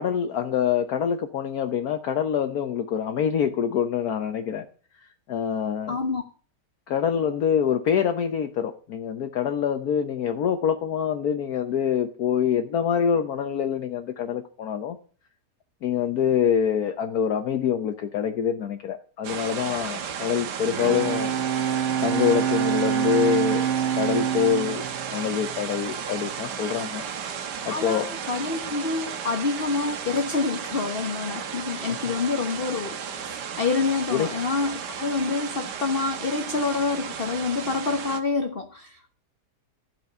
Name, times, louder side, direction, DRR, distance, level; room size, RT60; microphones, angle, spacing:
voice 1, 0.0-4.6 5.0-6.0 6.9-15.0 15.8-21.3 22.0-23.7 24.0-24.8 25.1-27.0 27.6-28.1 32.1-32.2 34.1-34.3, left 8 dB, 70° left, 7 dB, 1.4 m, -25 dB
voice 2, 5.9-6.2 27.7-39.1, left 4 dB, 40° left, 5 dB, 1.3 m, -27 dB
sound 1, 19.2-38.2, right 7 dB, 85° right, 1.7 m, -34 dB
Bowed string instrument, 20.5-26.2, right 9 dB, 55° right, 1.0 m, -26 dB
13.0 x 6.2 x 6.7 m, 0.40 s
omnidirectional pair, 1.7 m